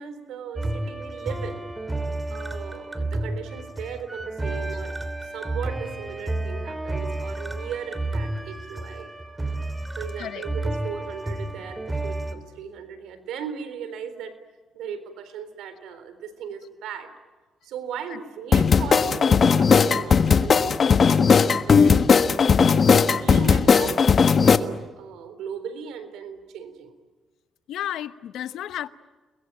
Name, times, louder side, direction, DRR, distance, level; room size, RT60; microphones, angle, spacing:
voice 1, 0.0-1.6 2.3-9.4 10.0-14.4 14.7-17.1 17.6-21.9 22.7-22.9 23.2-26.9, right 7 dB, 85° right, 3.8 m, -37 dB
sound 1, 0.6-12.3, right 2 dB, 15° right, 3.0 m, -31 dB
sound 2, 18.5-24.6, left 5 dB, 45° left, 1.4 m, -17 dB
voice 2, 27.7-28.9, left 11 dB, 80° left, 1.0 m, -32 dB
29.5 x 22.0 x 9.0 m
cardioid pair, 90°, 0 cm